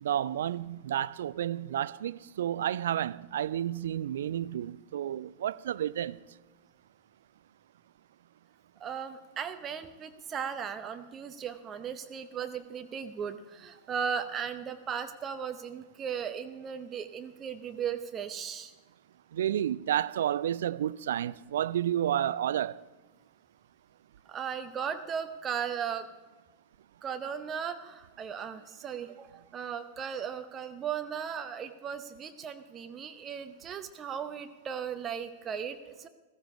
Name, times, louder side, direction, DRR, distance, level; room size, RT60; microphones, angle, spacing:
voice 1, 0.0-6.2 19.3-22.8, right 11 dB, 60° right, 0.4 m, -31 dB
voice 2, 8.8-18.7 24.3-26.1 27.0-36.1, right 7 dB, 25° right, 0.8 m, -37 dB
15.0 x 15.0 x 4.8 m
figure-of-eight pair, 90°, 0 cm